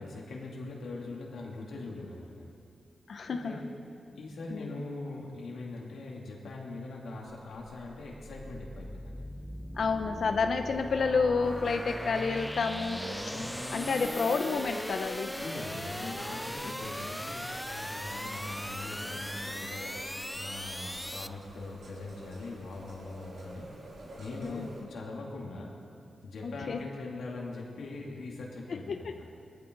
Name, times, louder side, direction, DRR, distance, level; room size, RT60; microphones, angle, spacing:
voice 1, 0.0-2.5 3.3-3.7 4.1-9.2 13.3-13.6 15.4-23.7 24.2-25.7 26.2-29.2, left 2 dB, 85° left, -2 dB, 2.8 m, -42 dB
voice 2, 3.1-3.6 4.5-4.8 9.7-13.1 13.7-15.4 16.7-16.8 24.4-24.7 26.4-26.8 28.9-29.1, left 4 dB, 60° left, 6 dB, 0.7 m, -30 dB
sound 1, 7.8-21.3, equal, 5° left, 0.4 m, -39 dB
sound 2, 11.4-24.8, right 1 dB, 75° right, 3.8 m, -47 dB
20.5 x 14.5 x 4.0 m, 2.4 s
wide cardioid pair, 115°, 0 cm